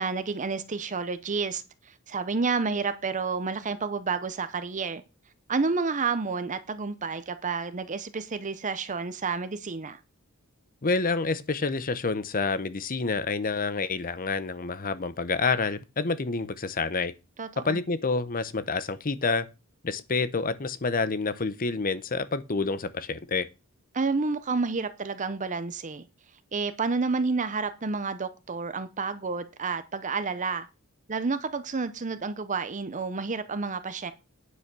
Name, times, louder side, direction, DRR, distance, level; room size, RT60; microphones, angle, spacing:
voice 1, 0.0-1.6 2.1-5.0 5.5-10.0 17.4-17.8 23.9-26.0 26.5-30.7 31.1-34.1, right 4 dB, 35° right, 0.7 m, -30 dB
voice 2, 10.8-17.1 17.6-19.5 19.8-23.5, left 4 dB, 40° left, 0.8 m, -28 dB
9.7 x 5.8 x 6.1 m
head